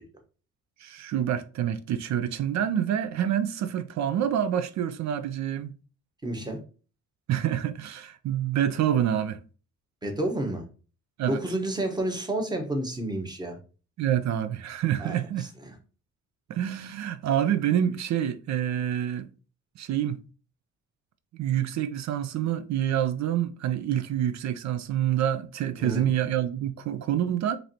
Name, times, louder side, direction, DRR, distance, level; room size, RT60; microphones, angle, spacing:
voice 1, 0.8-5.7 7.3-9.4 11.2-11.4 14.0-15.5 16.5-19.3 19.8-20.2 21.4-27.6, right 10 dB, 65° right, 0.5 m, -27 dB
voice 2, 6.2-6.6 10.0-10.6 11.3-13.6 15.0-15.8 25.8-26.1, right 1 dB, 15° right, 1.1 m, -30 dB
4.7 x 2.7 x 2.8 m
cardioid pair, 90°, 30 cm